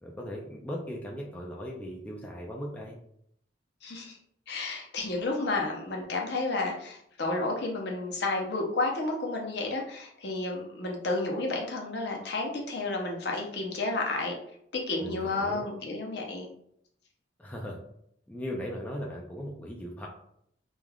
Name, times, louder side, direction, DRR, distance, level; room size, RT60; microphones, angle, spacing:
voice 1, 0.0-3.0 15.0-15.6 17.4-17.8 18.3-20.1, equal, 10° left, -2 dB, 0.3 m, -38 dB
voice 2, 3.8-4.2 4.5-14.4 14.7-16.5, left 2 dB, 60° left, 0 dB, 0.6 m, -31 dB
3.3 x 2.4 x 2.2 m, 0.71 s
head